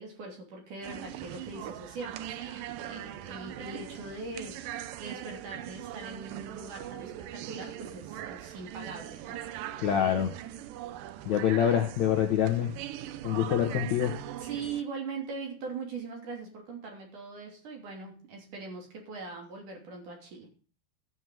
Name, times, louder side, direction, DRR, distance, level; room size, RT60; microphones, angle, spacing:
voice 1, 0.0-9.4 13.3-13.4 14.4-20.5, right 4 dB, 55° right, 1 dB, 4.2 m, -41 dB
sound 1, 0.8-14.8, right 12 dB, 80° right, 2.0 m, -41 dB
voice 2, 9.8-10.3 11.3-12.7 13.2-14.2, left 9 dB, 65° left, 4 dB, 1.9 m, -26 dB
13.0 x 6.2 x 7.8 m, 0.40 s
omnidirectional pair, 4.6 m